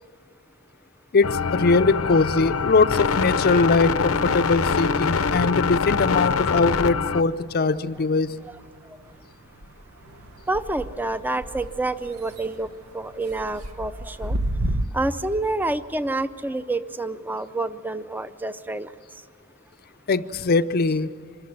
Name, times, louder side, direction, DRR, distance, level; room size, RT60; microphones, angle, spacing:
voice 1, 1.1-8.3 20.1-21.1, left 4 dB, 45° left, 0.5 m, -21 dB
sound 1, 1.2-7.2, left 5 dB, 85° left, 0.7 m, -24 dB
sound 2, 5.9-14.8, right 1 dB, 85° right, 1.0 m, -35 dB
voice 2, 10.5-14.4 14.9-18.9, right 2 dB, 10° right, 0.5 m, -28 dB
25.0 x 14.0 x 9.7 m
head